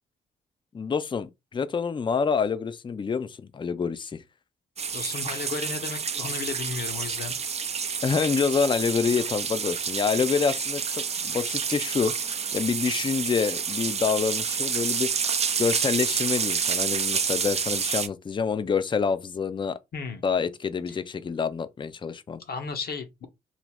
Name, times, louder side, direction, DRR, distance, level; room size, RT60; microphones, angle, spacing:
voice 1, 0.7-4.1 8.0-12.1 12.5-15.1 15.6-19.8 20.2-22.4, left 5 dB, 25° left, 0.4 m, -27 dB
sound 1, 4.8-18.1, right 6 dB, 35° right, 0.4 m, -29 dB
voice 2, 4.9-7.4 19.9-20.2 20.9-21.0 22.4-23.3, left 5 dB, 55° left, 0.8 m, -34 dB
2.5 x 2.1 x 3.3 m
hypercardioid pair, 50°, 19 cm